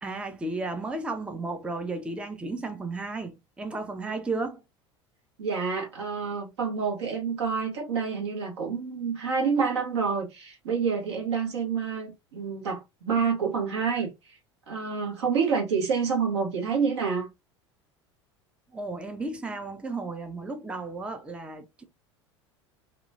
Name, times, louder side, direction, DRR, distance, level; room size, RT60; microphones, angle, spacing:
voice 1, 0.0-4.6 18.7-21.8, right 3 dB, 5° right, 0.5 m, -34 dB
voice 2, 5.4-14.4 14.7-17.3, right 5 dB, 70° right, 1.2 m, -28 dB
2.8 x 2.3 x 2.6 m
figure-of-eight pair, 75°, 15 cm